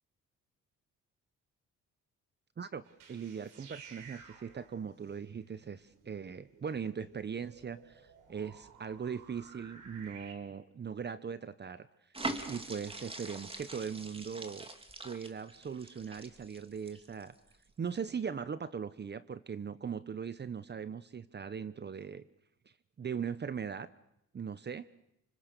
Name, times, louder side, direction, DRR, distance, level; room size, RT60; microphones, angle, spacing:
sound 1, 2.8-10.3, right 6 dB, 90° right, 4.8 m, -55 dB
voice 1, 3.1-11.9 12.5-14.7 15.0-17.3 17.8-22.2 23.0-23.9 24.3-24.9, right 6 dB, 35° right, 14 dB, 1.0 m, -40 dB
sound 2, 12.1-17.5 17.9-18.1, right 2 dB, 20° right, 3.0 m, -43 dB
29.0 x 27.0 x 6.9 m, 0.80 s
cardioid pair, 90°, 30 cm